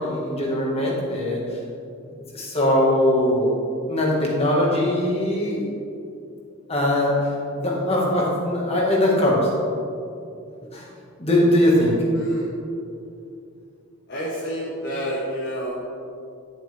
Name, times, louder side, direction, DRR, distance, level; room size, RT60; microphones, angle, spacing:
voice 1, 0.0-1.4 2.1-3.5 3.9-5.6 6.7-7.1 7.5-9.5 10.7-10.8 11.2-12.0, left 1 dB, 30° left, -4 dB, 1.9 m, -21 dB
voice 2, 12.1-12.5 14.1-15.7, equal, 50° left, -7 dB, 1.7 m, -29 dB
12.0 x 7.2 x 3.6 m, 2.6 s
head